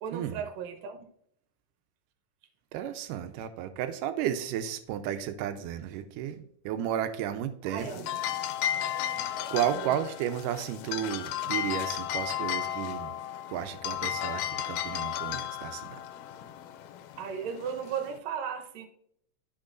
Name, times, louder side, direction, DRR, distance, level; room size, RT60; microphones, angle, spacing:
voice 1, 0.0-1.1 7.7-8.0 9.7-10.0 17.2-18.9, right 7 dB, 65° right, 5 dB, 2.0 m, -36 dB
voice 2, 2.7-8.1 9.1-13.1 13.5-16.0, right 10 dB, 80° right, 9 dB, 2.2 m, -33 dB
sound 1, 7.8-18.2, left 11 dB, 80° left, 2.1 m, -34 dB
12.5 x 4.7 x 2.5 m, 0.69 s
omnidirectional pair, 3.8 m